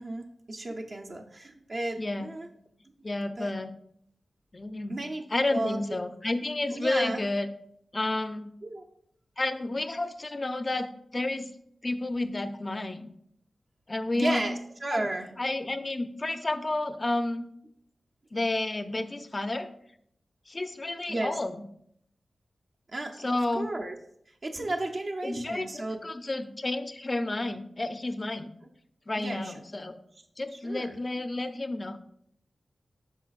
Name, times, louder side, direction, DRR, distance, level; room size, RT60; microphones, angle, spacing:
voice 1, 0.0-2.5 3.4-3.5 4.9-5.8 6.7-7.2 8.6-8.8 14.1-15.3 21.1-21.4 22.9-24.0 24.4-26.0 29.1-29.5 30.5-31.0, right 2 dB, 50° right, 1 dB, 0.6 m, -33 dB
voice 2, 2.0-2.3 3.0-3.7 4.5-5.0 5.3-7.5 7.9-8.5 9.4-11.5 11.8-13.1 13.9-14.4 14.9-15.1 15.4-17.5 18.3-19.7 20.5-21.6 23.2-23.7 25.2-28.5 29.1-30.0 30.4-32.0, left 2 dB, 30° left, 10 dB, 0.5 m, -31 dB
12.0 x 4.0 x 2.4 m, 0.70 s
wide cardioid pair, 110°, 0 cm